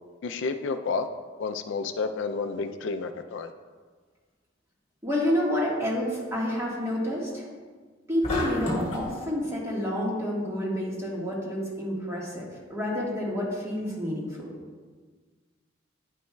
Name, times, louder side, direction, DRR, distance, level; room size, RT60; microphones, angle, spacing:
voice 1, 0.2-1.1 1.4-3.5, left 4 dB, 70° left, 7 dB, 0.4 m, -30 dB
voice 2, 5.0-7.5 8.1-14.5, equal, 15° right, -5 dB, 1.5 m, -29 dB
sound 1, 8.2-9.1, left 1 dB, 35° left, 1.5 m, -29 dB
10.0 x 5.3 x 2.2 m, 1.5 s
head